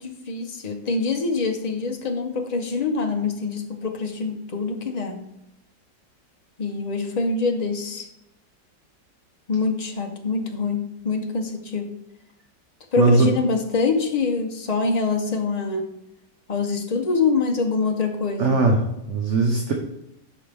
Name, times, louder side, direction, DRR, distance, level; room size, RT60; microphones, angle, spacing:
voice 1, 0.0-5.3 6.6-8.1 9.5-11.9 12.9-15.9 16.5-18.6, left 4 dB, 90° left, 3 dB, 0.3 m, -25 dB
voice 2, 13.0-13.3 18.4-19.7, right 3 dB, 50° right, 2 dB, 1.0 m, -19 dB
11.5 x 5.0 x 3.4 m, 0.82 s
omnidirectional pair, 1.9 m